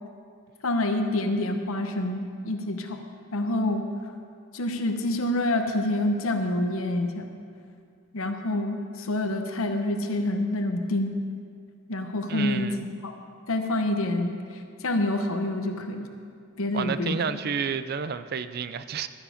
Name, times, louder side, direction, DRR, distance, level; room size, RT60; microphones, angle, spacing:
voice 1, 0.6-3.0 3.3-3.8 4.5-7.3 8.1-11.2 11.9-12.7 13.0-13.1 13.5-14.4 14.8-16.1 16.6-17.4, left 1 dB, 70° left, 5 dB, 0.9 m, -27 dB
voice 2, 12.3-12.8 16.7-19.1, right 6 dB, 45° right, 13 dB, 0.4 m, -30 dB
13.5 x 10.0 x 4.9 m, 2.3 s
head